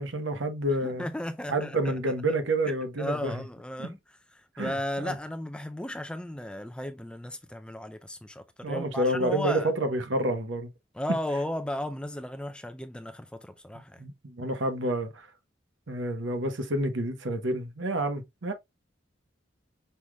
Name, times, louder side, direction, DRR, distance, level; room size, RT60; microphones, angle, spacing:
voice 1, 0.0-1.1 1.5-3.4 3.8-3.9 4.6-5.1 8.6-10.7 14.0-15.3 15.9-18.5, right 1 dB, 80° right, 1.0 m, -29 dB
voice 2, 0.8-1.9 2.6-9.7 10.9-14.0, left 1 dB, 5° left, 0.4 m, -35 dB
5.6 x 3.2 x 2.3 m
head